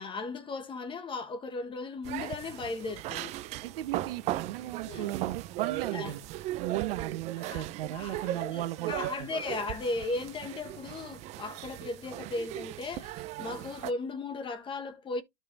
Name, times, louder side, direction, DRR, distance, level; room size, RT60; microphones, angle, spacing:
voice 1, 0.0-3.3 4.8-5.1 5.9-6.1 7.4-7.7 7.9-15.2, left 3 dB, 15° left, 1.3 m, -36 dB
sound 1, 2.0-13.9, right 15 dB, 20° right, 0.4 m, -38 dB
voice 2, 3.6-6.2 6.6-8.9, right 14 dB, 60° right, 1.3 m, -36 dB
12.5 x 5.4 x 2.6 m
hypercardioid pair, 130°, 32 cm